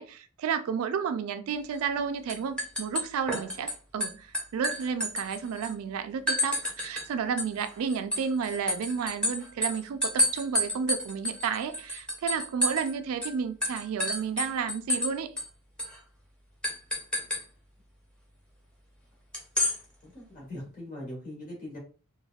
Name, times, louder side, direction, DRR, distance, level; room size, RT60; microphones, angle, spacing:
voice 1, 0.0-15.3, right 6 dB, 75° right, 0.3 m, -32 dB
sound 1, 1.7-2.0 2.3-3.7 4.0-5.7 6.3-7.1 7.4-12.9 13.2-13.3 13.6-15.1 15.4-15.5 15.8-16.0 16.6-17.4 19.3-19.8, left 1 dB, 5° left, 0.6 m, -29 dB
voice 2, 20.0-21.8, left 1 dB, 35° left, 1.4 m, -41 dB
3.3 x 2.2 x 2.3 m
head